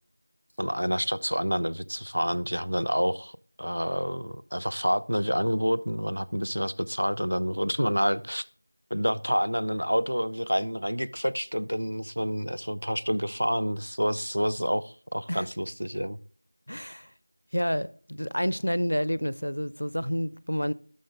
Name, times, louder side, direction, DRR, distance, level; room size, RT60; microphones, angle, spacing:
voice 1, 0.6-8.4 8.9-16.2, equal, 65° right, 0.8 m, -28 dB
voice 2, 16.7-17.1 17.5-20.7, equal, 40° left, 0.4 m, -29 dB
18.0 x 6.4 x 3.5 m
figure-of-eight pair, 180°, 0 cm